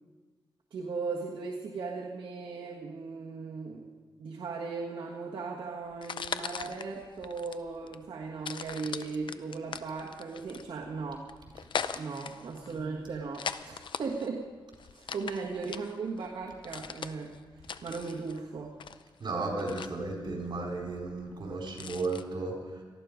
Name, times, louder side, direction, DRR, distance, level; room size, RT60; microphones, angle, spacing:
voice 1, 0.7-3.9 4.2-11.3 11.9-14.5 14.9-17.3 17.8-18.7, right 4 dB, 90° right, -2 dB, 1.6 m, -37 dB
sound 1, 5.9-22.2, left 7 dB, 75° left, 0.6 m, -41 dB
voice 2, 19.2-22.8, right 3 dB, 70° right, -1 dB, 4.7 m, -34 dB
19.0 x 14.5 x 5.1 m, 1.3 s
wide cardioid pair, 100°, 8 cm